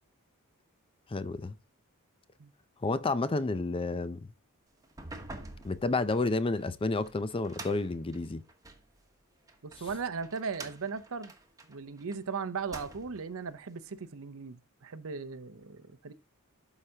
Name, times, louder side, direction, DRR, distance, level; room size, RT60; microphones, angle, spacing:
voice 1, 1.1-1.5 2.8-4.2 5.6-8.4, left 3 dB, 25° left, 0.5 m, -30 dB
sound 1, 4.8-8.9 9.5-12.2 12.5-13.3, right 2 dB, 15° right, 1.2 m, -47 dB
voice 2, 9.6-11.3 11.7-16.1, right 5 dB, 65° right, 0.7 m, -37 dB
12.0 x 4.9 x 2.8 m
head